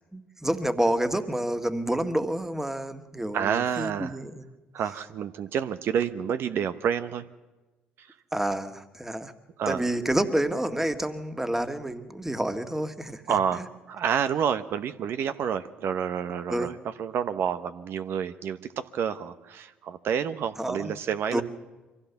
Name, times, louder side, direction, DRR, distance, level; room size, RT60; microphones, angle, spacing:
voice 1, 0.1-4.5 8.3-9.3 9.7-13.2 16.5-16.7 20.6-20.9 21.3-21.4, right 1 dB, 10° right, 9 dB, 1.8 m, -28 dB
voice 2, 3.3-4.2 4.7-7.3 8.0-8.1 9.6-9.8 13.3-21.4, right 8 dB, 60° right, 11 dB, 0.9 m, -29 dB
24.0 x 15.5 x 7.1 m, 1.2 s
hypercardioid pair, 55°, 4 cm